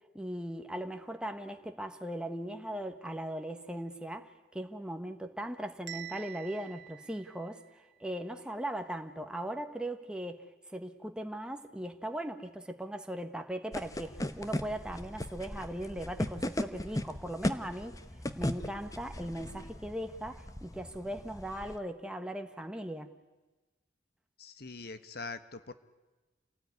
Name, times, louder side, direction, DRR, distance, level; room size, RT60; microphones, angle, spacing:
voice 1, 0.1-7.6 8.0-10.5 10.7-17.9 18.3-23.1, right 1 dB, 5° right, 5 dB, 1.3 m, -39 dB
Bell, 5.9-7.9, right 12 dB, 85° right, 1.4 m, -47 dB
sound 1, 13.7-21.8, left 1 dB, 20° left, 1.1 m, -38 dB
voice 2, 24.4-25.7, left 3 dB, 60° left, 12 dB, 1.2 m, -43 dB
27.5 x 18.0 x 9.6 m, 1.2 s
head